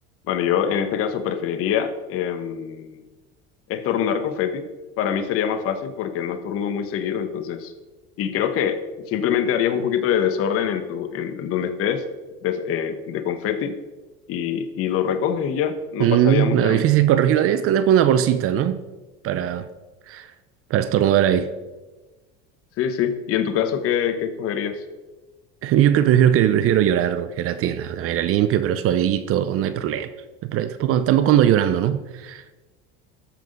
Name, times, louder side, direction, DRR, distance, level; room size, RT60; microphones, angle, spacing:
voice 1, 0.3-3.0 3.7-4.6 5.0-7.7 8.2-8.8 9.1-12.0 12.4-13.8 14.3-16.8 22.8-24.8, left 8 dB, 50° left, 1.1 m, -24 dB
voice 2, 16.0-18.8 19.2-19.7 20.1-20.3 20.7-21.5 25.6-30.1 30.5-32.4, right 10 dB, 50° right, 0.7 m, -19 dB
13.5 x 5.9 x 5.3 m
supercardioid pair, 115°, 30 cm